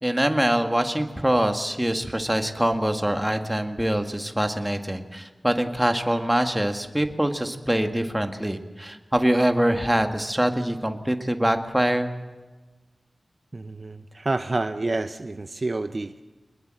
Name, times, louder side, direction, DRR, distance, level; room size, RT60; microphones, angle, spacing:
voice 1, 0.0-12.1, right 1 dB, 10° right, 6 dB, 1.9 m, -24 dB
voice 2, 13.5-16.1, right 2 dB, 45° right, 10 dB, 0.8 m, -28 dB
24.0 x 20.5 x 7.8 m, 1.3 s
wide cardioid pair, 80°, 0 cm